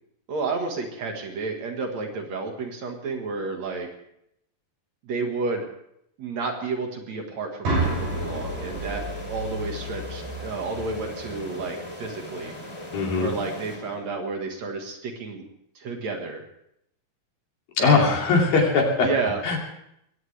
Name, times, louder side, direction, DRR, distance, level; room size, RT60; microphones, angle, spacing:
voice 1, 0.3-3.9 5.0-5.7 6.2-12.5 13.2-15.4 15.8-16.4 17.8-18.2 19.0-19.4, right 4 dB, 55° right, 3 dB, 2.7 m, -31 dB
sound 1, 7.6-11.6, right 2 dB, 85° right, 8.4 m, -31 dB
sound 2, 7.8-14.4, left 1 dB, 10° left, 2.8 m, -39 dB
voice 2, 12.9-13.3 17.8-19.1 19.4-19.6, left 4 dB, 75° left, 0 dB, 4.5 m, -20 dB
21.5 x 17.0 x 3.4 m, 0.76 s
omnidirectional pair, 4.1 m